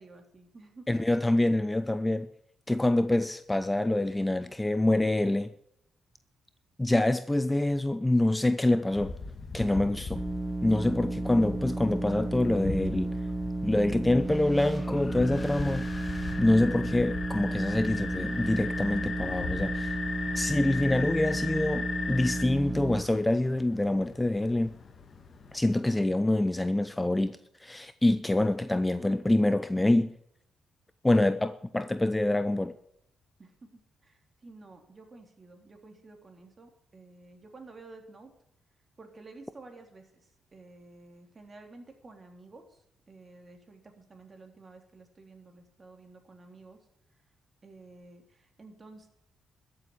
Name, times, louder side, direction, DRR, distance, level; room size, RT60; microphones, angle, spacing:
voice 1, 0.0-1.0 33.4-38.3 39.0-46.9 47.6-49.1, right 3 dB, 35° right, 3.6 m, -52 dB
voice 2, 0.9-2.3 2.7-5.5 6.8-9.1 9.5-10.2 10.6-13.1 13.6-15.9 16.4-20.0 20.3-24.7 25.5-30.1 31.0-32.7, left 1 dB, 10° left, 0.7 m, -26 dB
sound 1, 8.9-25.8, left 4 dB, 45° left, 1.9 m, -39 dB
sound 2, 10.1-23.0, right 2 dB, 20° right, 1.4 m, -33 dB
13.5 x 7.8 x 8.6 m
cardioid pair, 80°, 0 cm